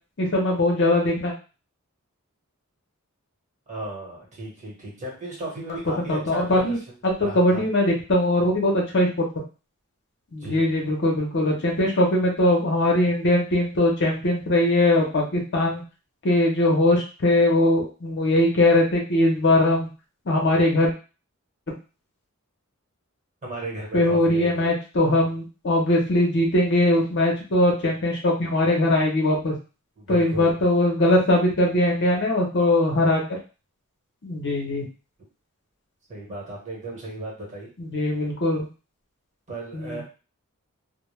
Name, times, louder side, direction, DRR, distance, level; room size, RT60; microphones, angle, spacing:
voice 1, 0.2-1.3 6.0-6.8 7.0-9.2 10.3-15.8 16.2-19.9 20.3-20.9 23.9-29.5 30.1-33.4 34.2-34.9 37.8-38.7 39.7-40.0, left 1 dB, 55° left, -1 dB, 0.7 m, -21 dB
voice 2, 3.7-6.7 7.2-7.7 10.4-10.7 23.4-24.7 30.0-30.5 36.1-37.7 39.5-40.0, right 2 dB, 35° right, -3 dB, 1.0 m, -35 dB
2.2 x 2.1 x 3.1 m, 0.33 s
head